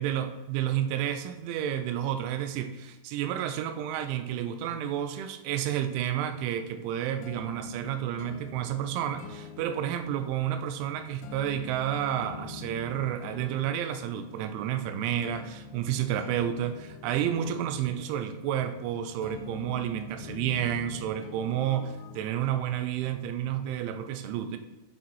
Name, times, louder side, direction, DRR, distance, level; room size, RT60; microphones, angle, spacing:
voice 1, 0.0-24.6, right 10 dB, 90° right, 8 dB, 3.1 m, -30 dB
sound 1, 6.2-22.3, left 5 dB, 80° left, 2.5 m, -46 dB
8.3 x 7.1 x 3.1 m, 1.0 s
omnidirectional pair, 5.3 m